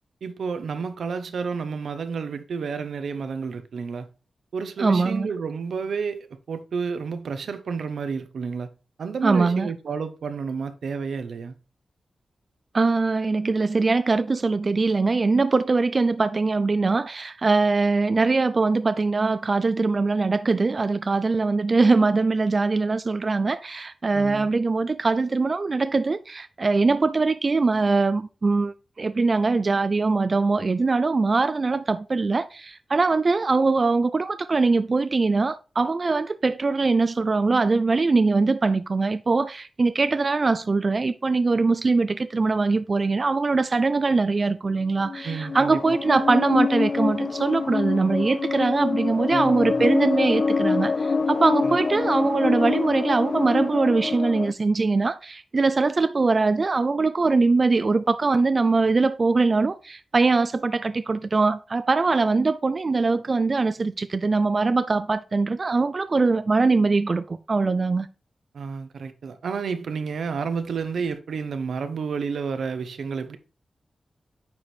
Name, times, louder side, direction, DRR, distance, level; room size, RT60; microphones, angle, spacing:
voice 1, 0.2-4.1 4.5-8.7 9.0-11.6 24.1-24.5 45.2-45.8 49.3-49.9 51.6-51.8 68.5-73.4, right 5 dB, 85° right, 0.8 m, -30 dB
voice 2, 4.8-5.3 9.2-9.7 12.7-68.1, right 3 dB, 40° right, 0.3 m, -22 dB
sound 1, 45.0-54.5, left 4 dB, 45° left, 0.3 m, -25 dB
9.5 x 4.5 x 3.2 m
wide cardioid pair, 110°, 0 cm